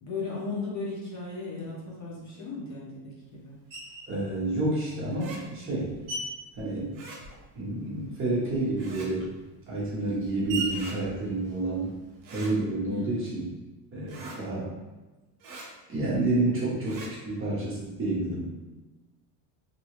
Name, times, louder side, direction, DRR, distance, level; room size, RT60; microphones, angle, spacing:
voice 1, 0.0-3.6 12.9-13.4, left 3 dB, 35° left, -5 dB, 0.8 m, -36 dB
Screech, 3.7-4.2 4.9-7.6 7.9-12.2, right 2 dB, 45° right, 1.3 m, -40 dB
voice 2, 4.1-5.9 6.6-7.0 7.5-9.3 9.7-11.9 12.3-13.5 13.9-14.7 15.9-18.5, right 2 dB, 25° right, -6 dB, 0.8 m, -29 dB
sound 1, 5.1-5.4 6.9-7.2 8.8-9.1 10.7-11.0 12.2-12.5 14.1-14.4 15.4-15.7 16.8-17.1, right 3 dB, 60° right, 0.8 m, -43 dB
2.8 x 2.3 x 3.0 m, 1.1 s
cardioid pair, 150°, 46 cm